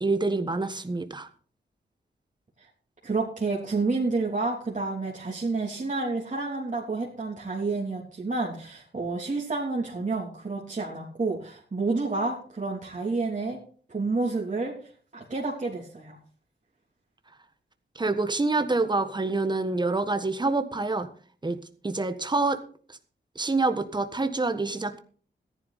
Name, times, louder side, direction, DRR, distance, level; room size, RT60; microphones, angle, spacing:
voice 1, 0.0-1.3 17.9-21.1 21.4-22.6 23.3-25.0, right 3 dB, 25° right, 8 dB, 1.4 m, -27 dB
voice 2, 3.0-13.6 13.9-14.8 15.1-16.2, right 3 dB, 40° right, -3 dB, 3.2 m, -29 dB
14.5 x 10.5 x 4.2 m, 0.44 s
cardioid pair, 65°, 19 cm